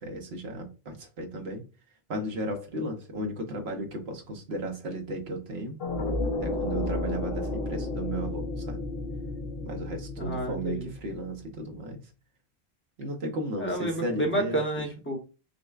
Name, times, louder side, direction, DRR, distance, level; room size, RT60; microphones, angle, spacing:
voice 1, 0.0-1.6 2.1-5.8 6.4-8.8 9.6-12.0 13.0-14.6, right 1 dB, 75° right, 1.1 m, -34 dB
sound 1, 5.8-11.7, left 2 dB, 70° left, 1.0 m, -33 dB
voice 2, 10.2-10.9 13.6-15.2, right 1 dB, 15° left, 0.8 m, -30 dB
6.3 x 2.2 x 2.3 m
omnidirectional pair, 1.1 m